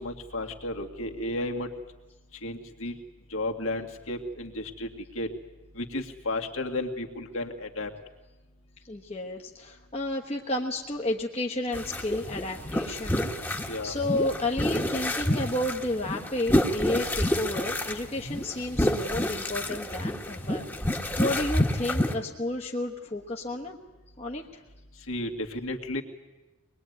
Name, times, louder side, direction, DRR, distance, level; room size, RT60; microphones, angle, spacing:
voice 1, 0.0-1.7 2.4-3.0 3.3-4.9 5.2-5.3 5.8-7.9 13.7-13.9 25.1-26.0, left 1 dB, 70° left, 3 dB, 2.3 m, -33 dB
voice 2, 8.9-23.8 24.2-24.6, left 1 dB, 30° left, 0 dB, 1.2 m, -32 dB
sound 1, 11.7-22.1, left 1 dB, 10° left, 1.4 m, -29 dB
24.0 x 21.0 x 9.5 m, 1.1 s
head